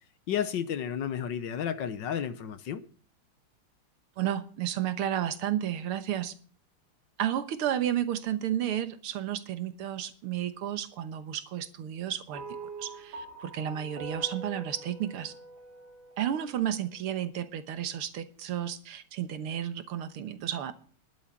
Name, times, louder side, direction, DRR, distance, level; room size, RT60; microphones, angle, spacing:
voice 1, 0.3-2.8, left 8 dB, 65° left, 1.4 m, -32 dB
voice 2, 4.2-6.3 7.2-12.4 12.8-15.3 16.2-20.7, right 10 dB, 85° right, 2.0 m, -32 dB
sound 1, 12.3-16.8, right 3 dB, 65° right, 4.2 m, -44 dB
11.5 x 8.5 x 7.4 m
omnidirectional pair, 2.3 m